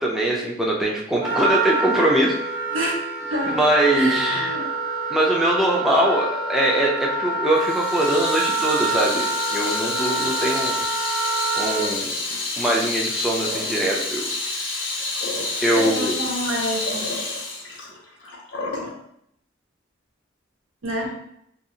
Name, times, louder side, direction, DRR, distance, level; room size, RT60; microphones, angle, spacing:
voice 1, 0.0-2.3 3.6-4.5 5.1-10.8 11.6-12.2 12.6-14.3 15.6-16.2, right 1 dB, ahead, -4 dB, 0.3 m, -22 dB
Wind instrument woodwind instrument, 1.2-11.9, right 3 dB, 50° right, 1.2 m, -27 dB
voice 2, 2.7-3.6 3.9-4.7 15.8-17.1 20.8-21.1, equal, 80° right, -1 dB, 0.7 m, -27 dB
Water tap faucet / Sink (filling or washing), 7.6-18.9, left 3 dB, 65° left, 0.7 m, -28 dB
2.7 x 2.4 x 2.7 m, 0.73 s
head